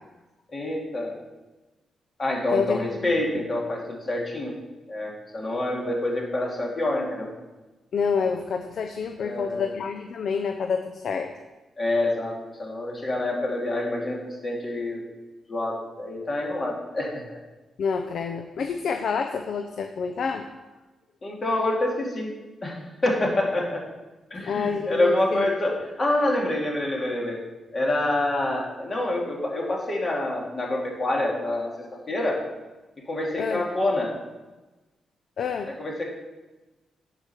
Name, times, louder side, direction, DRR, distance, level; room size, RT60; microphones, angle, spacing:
voice 1, 0.5-1.1 2.2-4.5 4.9-7.3 9.2-9.7 11.8-15.0 15.5-17.4 21.2-22.3 22.6-23.8 24.3-27.4 27.7-32.4 33.1-34.1 35.8-36.0, left 1 dB, 35° left, -2 dB, 2.3 m, -27 dB
voice 2, 7.9-11.3 17.8-20.4 24.4-25.5 33.4-33.6 35.4-35.7, left 6 dB, 65° left, 6 dB, 0.6 m, -28 dB
9.9 x 5.0 x 5.9 m, 1.2 s
cardioid pair, 105°, 0 cm